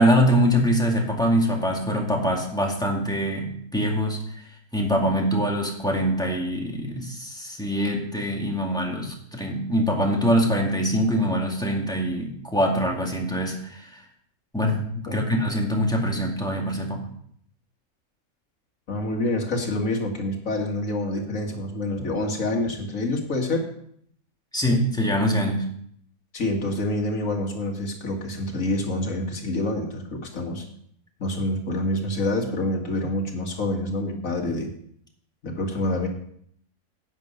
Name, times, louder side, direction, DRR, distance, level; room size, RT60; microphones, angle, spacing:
voice 1, 0.0-4.4 4.7-14.0 14.5-14.8 15.1-17.0 24.5-25.7, equal, 5° left, -1 dB, 2.1 m, -23 dB
voice 2, 14.7-15.2 18.9-23.7 26.3-30.6 31.2-34.7 35.4-36.1, left 1 dB, 65° left, 2 dB, 2.2 m, -27 dB
11.0 x 8.8 x 5.3 m, 0.66 s
omnidirectional pair, 1.5 m